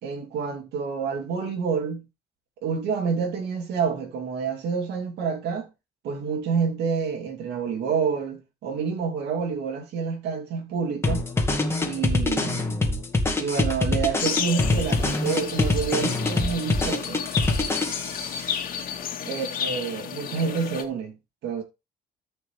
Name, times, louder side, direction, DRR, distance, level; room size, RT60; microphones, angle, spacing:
voice 1, 0.0-2.0 2.6-5.7 6.0-11.2 11.8-12.8 13.3-17.2 19.2-21.2 21.4-21.6, right 6 dB, 75° right, 2.7 m, -28 dB
sound 1, 11.0-18.3, left 2 dB, 15° left, 2.2 m, -24 dB
sound 2, 14.2-20.8, left 8 dB, 55° left, 2.1 m, -32 dB
13.5 x 6.1 x 3.3 m
cardioid pair, 110°, 17 cm